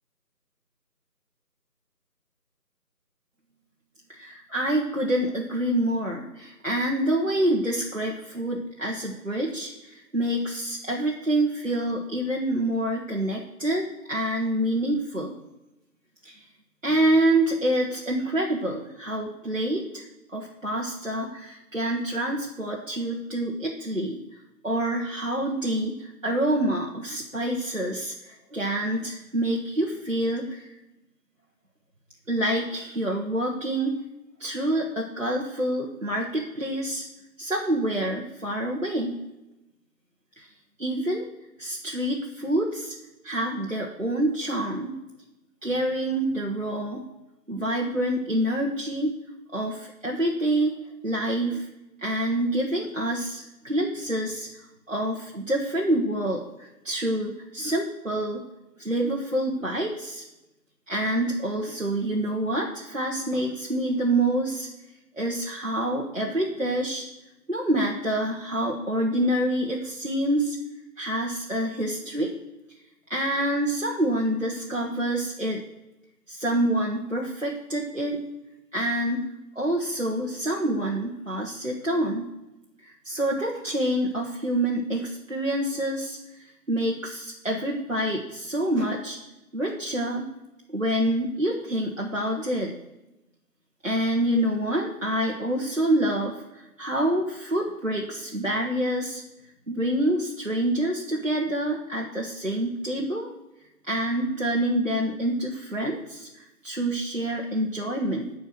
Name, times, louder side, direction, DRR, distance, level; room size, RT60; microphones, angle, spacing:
voice 1, 4.1-15.3 16.2-16.4 16.8-20.0 20.3-24.2 24.6-30.7 32.3-33.9 34.4-37.0 37.4-39.2 40.4-40.5 40.8-41.2 41.6-42.9 43.2-44.9 45.6-47.0 47.5-49.1 49.5-50.7 51.0-51.7 52.0-54.6 54.9-58.4 58.8-60.2 60.9-64.7 65.1-67.0 67.5-70.6 71.0-72.3 73.1-75.6 76.3-78.2 78.7-79.2 79.5-82.3 82.8-89.2 89.5-90.2 90.7-92.7 93.8-99.2 99.7-103.3 103.9-108.3, right 1 dB, 50° right, -2 dB, 1.3 m, -27 dB
10.0 x 4.5 x 7.7 m, 0.97 s
figure-of-eight pair, 175°, 48 cm